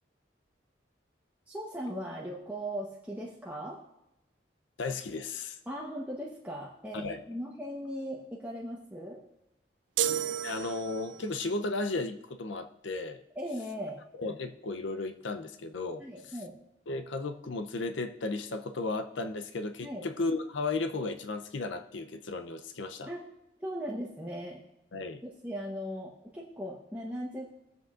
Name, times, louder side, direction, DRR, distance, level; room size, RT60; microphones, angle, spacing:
voice 1, 1.5-3.8 5.7-9.2 13.3-14.0 16.0-16.5 19.8-20.0 23.1-23.2 23.6-24.6 25.2-27.6, equal, 10° right, -5 dB, 1.0 m, -38 dB
voice 2, 4.8-5.6 6.9-7.2 10.4-13.2 14.2-16.3 16.9-23.1 24.9-25.2, left 3 dB, 90° left, 8 dB, 0.6 m, -34 dB
sound 1, 10.0-11.3, right 9 dB, 85° right, 0.4 m, -32 dB
21.0 x 7.7 x 2.5 m, 0.90 s
head